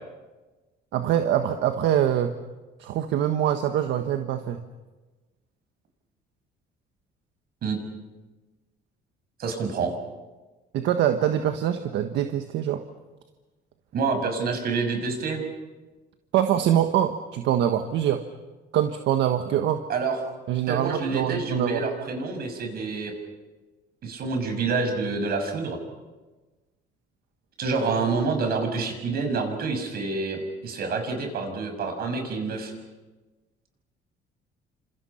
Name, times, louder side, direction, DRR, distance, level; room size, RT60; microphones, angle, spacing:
voice 1, 0.9-2.3 2.8-4.6 10.7-12.8 16.3-18.2 18.7-19.8 20.5-21.8, right 10 dB, 75° right, 7 dB, 1.5 m, -24 dB
voice 2, 9.4-10.0 13.9-15.4 19.9-20.2 20.7-23.1 24.0-25.8 27.6-32.7, right 4 dB, 55° right, 5 dB, 6.5 m, -27 dB
29.5 x 27.0 x 5.8 m, 1.2 s
cardioid pair, 125°, 19 cm